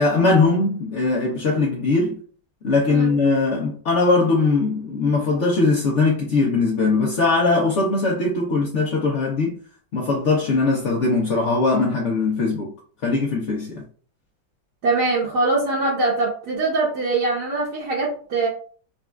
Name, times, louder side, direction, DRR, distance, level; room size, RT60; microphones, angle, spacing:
voice 1, 0.0-2.2 2.6-9.6 9.9-12.7 13.0-13.8, left 3 dB, 75° left, 0.6 m, -20 dB
voice 2, 14.8-18.5, right 3 dB, 60° right, 1.4 m, -22 dB
5.1 x 2.4 x 2.2 m
omnidirectional pair, 2.1 m